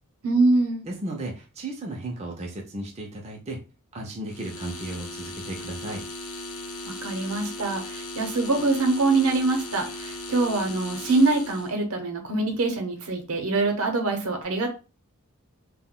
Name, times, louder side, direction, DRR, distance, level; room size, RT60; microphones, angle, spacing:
voice 1, 0.2-0.8 6.8-14.7, right 3 dB, 70° right, 4 dB, 0.7 m, -24 dB
voice 2, 0.9-3.6 3.9-6.0, right 1 dB, 30° right, 0 dB, 0.4 m, -35 dB
sound 1, 4.3-11.7, left 2 dB, 70° left, 0.6 m, -37 dB
2.2 x 2.1 x 3.6 m, 0.32 s
head